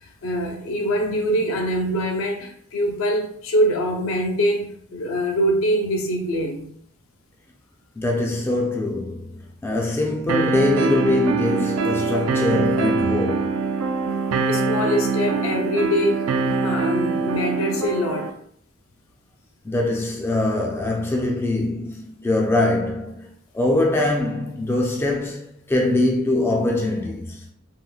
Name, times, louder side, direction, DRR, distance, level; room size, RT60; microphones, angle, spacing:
voice 1, 0.0-6.7 14.1-18.3, equal, 70° left, 0.5 m, -24 dB
voice 2, 8.0-9.3 9.6-13.6 19.6-27.4, left 2 dB, 10° left, 0.3 m, -23 dB
sound 1, 10.3-18.3, right 4 dB, 75° right, 0.3 m, -23 dB
3.6 x 2.1 x 2.3 m
head